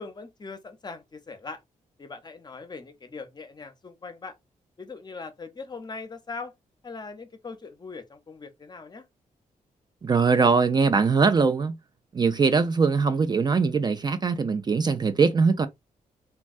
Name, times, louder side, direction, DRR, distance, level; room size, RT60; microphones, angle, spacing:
voice 1, 0.0-1.6 2.0-4.4 4.8-6.5 6.8-9.1, left 4 dB, 30° left, 0.6 m, -40 dB
voice 2, 10.0-11.7 12.1-15.7, right 4 dB, 30° right, 0.3 m, -21 dB
3.4 x 2.2 x 2.4 m
cardioid pair, 95°, 14 cm